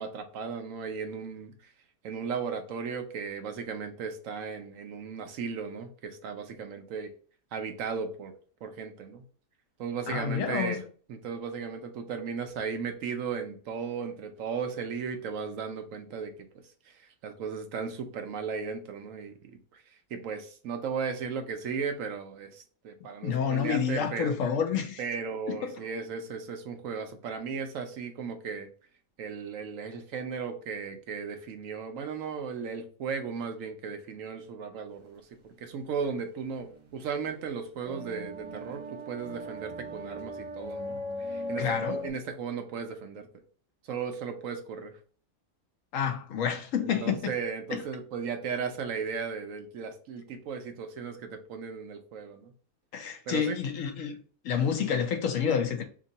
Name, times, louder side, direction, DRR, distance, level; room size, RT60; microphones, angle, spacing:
voice 1, 0.0-1.5 2.0-7.1 7.5-8.3 8.6-9.2 9.8-10.8 11.1-16.3 16.9-19.8 20.1-24.3 25.0-28.7 29.2-43.3 43.8-44.9 46.8-52.5 53.3-53.6, right 6 dB, 70° right, 1.0 m, -36 dB
voice 2, 10.1-10.8 23.2-25.0 25.5-25.8 41.6-42.0 45.9-47.3 47.7-47.8 52.9-54.2 54.4-55.8, left 7 dB, 70° left, 0.9 m, -29 dB
sound 1, 36.2-42.1, left 1 dB, 45° right, 0.4 m, -38 dB
2.9 x 2.7 x 3.9 m
omnidirectional pair, 1.5 m